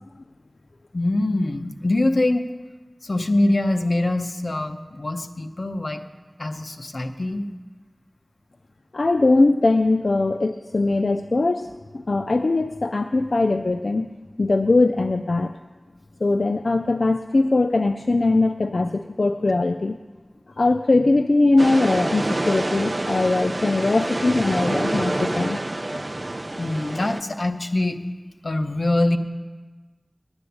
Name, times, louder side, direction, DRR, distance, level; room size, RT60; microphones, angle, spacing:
voice 1, 0.9-2.5 3.0-6.0 6.4-7.4 26.6-28.0 28.4-29.2, left 2 dB, 65° left, 6 dB, 0.8 m, -23 dB
voice 2, 8.9-14.1 14.4-15.5 16.2-20.0 20.6-25.6 25.9-26.0, left 2 dB, 80° left, 8 dB, 0.3 m, -21 dB
sound 1, 21.6-27.2, right 1 dB, 40° right, 0.4 m, -27 dB
9.7 x 7.8 x 9.4 m, 1.3 s
wide cardioid pair, 60°, 0 cm